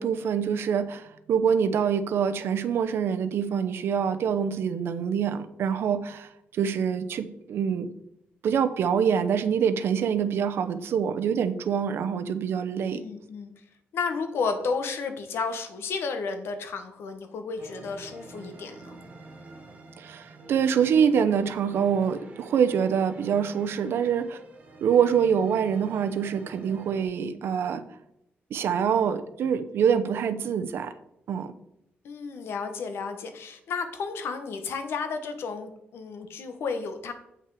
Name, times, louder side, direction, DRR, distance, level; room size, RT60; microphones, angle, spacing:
voice 1, 0.0-7.9 8.4-13.0 20.0-24.4 24.8-27.8 28.5-30.9 31.3-31.5, right 7 dB, 70° right, 10 dB, 0.7 m, -25 dB
voice 2, 12.9-13.5 13.9-19.0 32.0-37.1, left 5 dB, 75° left, 8 dB, 1.2 m, -32 dB
sound 1, 17.6-27.0, right 2 dB, 35° right, 1.5 m, -46 dB
8.2 x 5.9 x 4.8 m, 0.80 s
wide cardioid pair, 160°, 4 cm